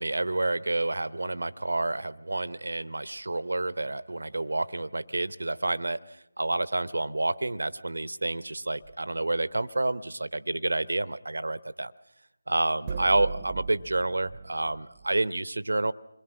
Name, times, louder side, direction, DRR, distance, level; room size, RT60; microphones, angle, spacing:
voice 1, 0.0-6.0 6.4-11.9 12.5-15.9, right 2 dB, 70° right, 16 dB, 0.8 m, -29 dB
sound 1, 8.8-9.2 12.9-15.2, right 5 dB, 20° right, 0.9 m, -38 dB
27.5 x 22.0 x 6.2 m, 0.84 s
figure-of-eight pair, 160°, 0 cm